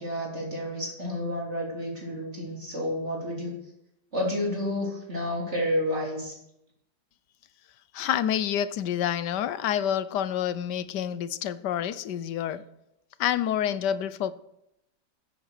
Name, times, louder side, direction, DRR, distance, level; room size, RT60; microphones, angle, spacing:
voice 1, 0.0-3.5 4.1-6.4, left 1 dB, 35° right, 4.1 m, -30 dB
voice 2, 7.9-12.6 13.2-14.3, left 10 dB, 75° left, 1.3 m, -28 dB
15.0 x 8.1 x 6.5 m
omnidirectional pair, 1.9 m